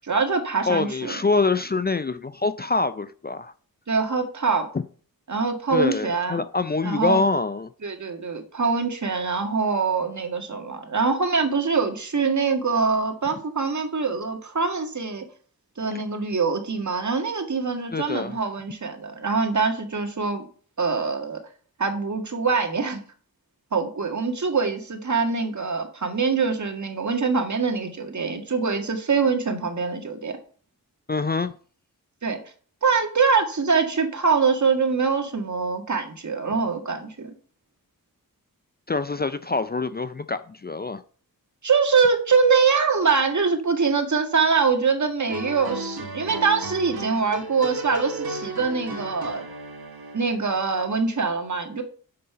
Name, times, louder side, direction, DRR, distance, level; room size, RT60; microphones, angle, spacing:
voice 1, 0.0-1.2 3.9-4.7 5.3-6.4 6.8-7.2 7.8-15.3 15.8-20.5 20.8-21.4 21.8-23.0 23.7-30.4 32.2-32.4 32.8-37.3 41.6-49.5 50.1-51.8, right 5 dB, 50° right, 1.8 m, -24 dB
voice 2, 0.7-3.5 5.7-7.7 17.9-18.3 31.1-31.5 38.9-41.0, left 3 dB, 25° left, 0.5 m, -25 dB
sound 1, 45.3-50.5, right 3 dB, 85° right, 1.5 m, -34 dB
6.7 x 5.5 x 6.7 m
cardioid pair, 55°, 36 cm